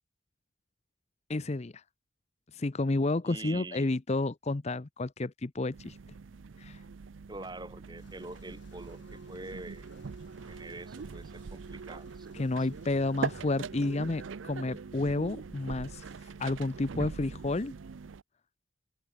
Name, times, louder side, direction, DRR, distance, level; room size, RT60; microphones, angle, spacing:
voice 1, 1.3-1.8 2.5-6.0 6.6-6.8 12.3-16.1 16.4-17.7, left 2 dB, 35° left, 0.7 m, -31 dB
voice 2, 3.2-4.0 7.3-9.9 10.5-12.3 12.6-12.7, right 2 dB, 20° right, 4.7 m, -45 dB
sound 1, 5.7-18.2, right 5 dB, 85° right, 0.5 m, -42 dB
sound 2, 8.0-13.0, left 3 dB, 70° left, 4.4 m, -62 dB
open air
head